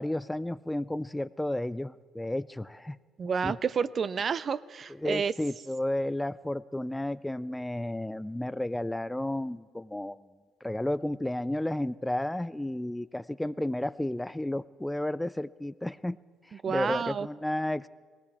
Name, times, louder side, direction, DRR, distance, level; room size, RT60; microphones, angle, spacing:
voice 1, 0.0-3.0 3.4-3.5 5.0-10.2 10.6-16.2 16.4-17.9, left 1 dB, 10° left, 17 dB, 0.4 m, -32 dB
voice 2, 3.2-5.3 16.6-17.3, right 6 dB, 45° right, 16 dB, 0.5 m, -30 dB
19.5 x 18.0 x 3.5 m, 1.5 s
hypercardioid pair, 55°, 0 cm